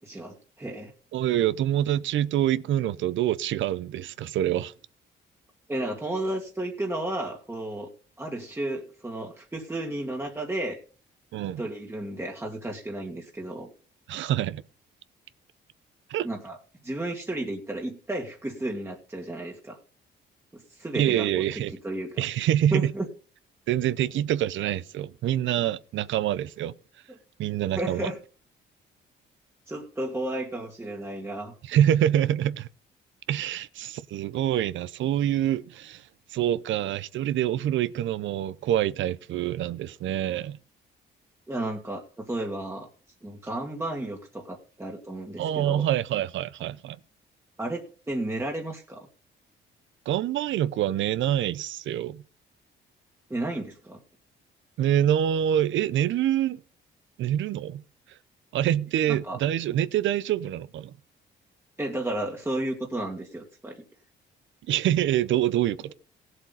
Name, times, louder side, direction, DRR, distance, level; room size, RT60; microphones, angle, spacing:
voice 1, 0.0-0.9 5.7-7.9 8.2-10.8 11.6-13.7 16.2-16.6 16.8-19.8 20.5-21.4 21.8-22.3 22.7-23.1 27.8-28.2 29.7-31.5 41.5-42.9 43.2-45.9 47.6-49.1 53.3-54.0 59.1-59.4 61.8-63.8, right 1 dB, 10° right, 1.9 m, -33 dB
voice 2, 1.1-4.7 11.3-11.6 14.1-14.6 16.1-16.3 20.9-21.7 22.2-22.9 23.7-26.7 27.4-28.1 31.6-32.7 33.3-36.0 36.3-40.6 45.4-47.0 50.1-52.2 54.8-56.6 57.2-57.8 58.5-60.9 64.7-65.9, right 11 dB, 75° right, 0.6 m, -26 dB
17.0 x 7.9 x 4.0 m
cardioid pair, 90°, 20 cm